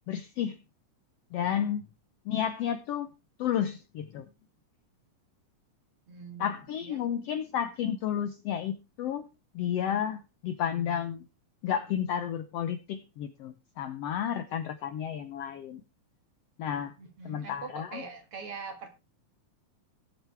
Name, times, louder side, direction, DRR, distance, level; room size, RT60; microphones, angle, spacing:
voice 1, 0.1-0.6 1.3-1.9 2.2-3.1 3.4-4.3 6.4-9.3 9.5-11.3 11.6-15.8 16.6-16.9 17.2-18.0, left 9 dB, 75° left, 10 dB, 1.5 m, -32 dB
voice 2, 6.1-7.0 17.0-18.9, right 5 dB, 50° right, 5 dB, 2.6 m, -43 dB
18.0 x 7.8 x 3.4 m, 0.28 s
omnidirectional pair, 3.6 m